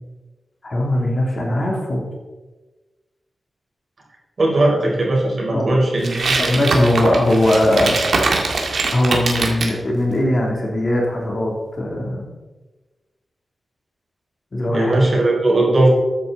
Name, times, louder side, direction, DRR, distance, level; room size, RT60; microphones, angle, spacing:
voice 1, 0.6-2.0 5.5-5.8 6.4-8.0 8.9-12.3 14.5-15.0, left 1 dB, 40° left, -1 dB, 3.1 m, -19 dB
voice 2, 4.4-6.4 14.7-15.9, right 2 dB, 50° right, -2 dB, 4.4 m, -18 dB
sound 1, 6.0-9.8, right 3 dB, 70° right, 2.0 m, -22 dB
13.5 x 9.2 x 4.1 m, 1.2 s
wide cardioid pair, 110°, 0 cm